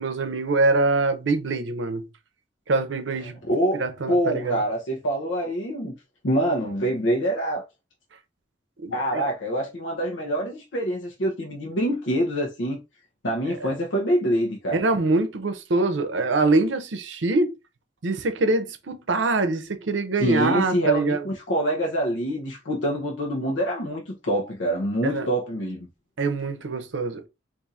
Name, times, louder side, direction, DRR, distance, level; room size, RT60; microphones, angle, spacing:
voice 1, 0.0-2.1 2.7-3.4 3.7-4.6 8.8-9.3 13.6-13.7 14.7-17.5 18.0-21.2 25.0-25.3 26.2-27.3, right 3 dB, 80° right, 0.6 m, -24 dB
voice 2, 3.5-3.8 4.1-5.9 6.2-7.6 8.9-12.8 13.2-14.8 20.2-25.9, right 1 dB, 80° left, 0.7 m, -25 dB
4.1 x 2.6 x 2.4 m
head